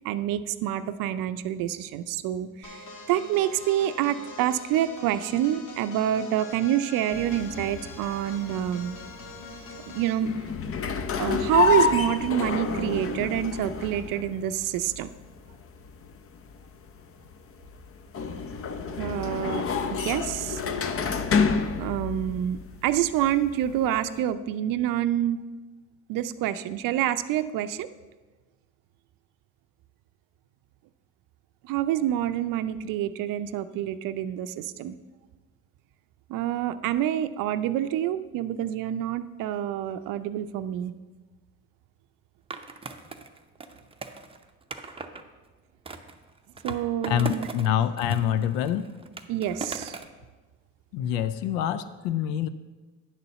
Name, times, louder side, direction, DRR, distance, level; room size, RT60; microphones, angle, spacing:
voice 1, 0.0-9.0 9.9-10.3 11.2-15.1 19.0-20.6 21.8-25.4 26.1-27.9 31.6-35.0 36.3-40.9 46.6-47.5 49.3-50.0, right 11 dB, 65° right, 11 dB, 0.5 m, -27 dB
sound 1, 2.6-10.2, left 3 dB, 60° left, 2.0 m, -43 dB
sound 2, 7.1-24.2, left 5 dB, 40° left, 0.7 m, -30 dB
Skateboard, 42.5-45.2 45.9-47.7 48.0-50.2, right 4 dB, 15° right, 0.6 m, -39 dB
voice 2, 47.1-48.9 50.9-52.5, left 10 dB, 90° left, 13 dB, 0.5 m, -26 dB
9.6 x 4.1 x 6.7 m, 1.3 s
supercardioid pair, 80°, 35 cm